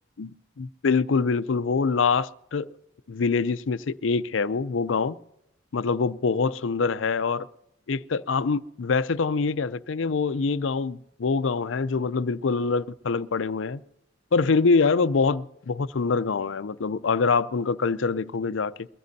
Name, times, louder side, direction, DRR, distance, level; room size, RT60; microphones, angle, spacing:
voice 1, 0.6-2.7 3.1-5.2 5.7-7.5 7.9-13.8 14.3-18.9, left 4 dB, 80° left, 0.5 m, -25 dB
22.5 x 15.5 x 2.8 m
head